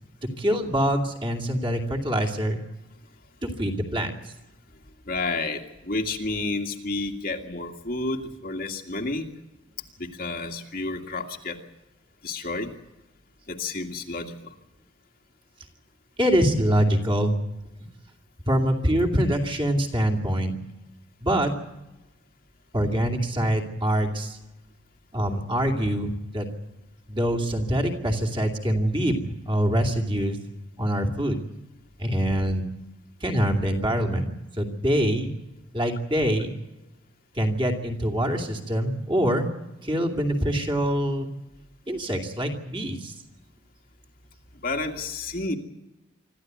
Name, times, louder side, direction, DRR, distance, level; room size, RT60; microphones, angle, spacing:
voice 1, 0.4-2.6 3.4-4.1 16.2-17.3 18.5-20.5 21.2-21.5 22.7-24.4 25.1-26.5 27.1-30.4 30.8-31.4 32.0-32.7 33.2-34.3 34.6-35.3 35.7-36.5 37.3-39.5 39.8-41.3 41.9-43.1, equal, 25° right, 2 dB, 2.6 m, -24 dB
voice 2, 5.1-9.3 10.0-11.6 12.2-12.7 13.5-14.5 44.6-45.5, left 3 dB, 45° left, 2 dB, 2.0 m, -30 dB
25.5 x 14.0 x 9.4 m, 1.0 s
head